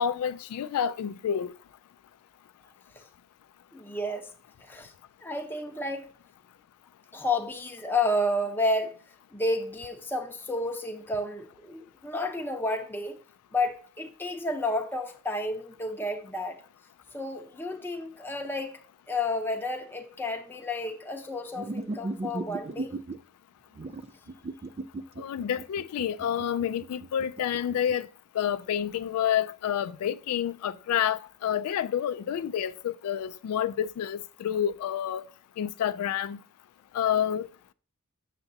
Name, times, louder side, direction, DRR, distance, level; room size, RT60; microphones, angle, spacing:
voice 1, 0.0-1.5 25.2-28.1 28.3-35.3 35.6-36.4 36.9-37.5, left 9 dB, 80° left, 0.3 m, -29 dB
voice 2, 3.7-4.3 4.6-4.9 5.2-6.1 7.1-9.0 9.3-13.2 13.5-16.6 17.1-18.8 19.1-22.9, left 2 dB, 10° left, 0.7 m, -31 dB
sound 1, 21.6-23.2 23.7-28.0, right 2 dB, 30° right, 0.3 m, -36 dB
7.0 x 6.7 x 2.6 m
head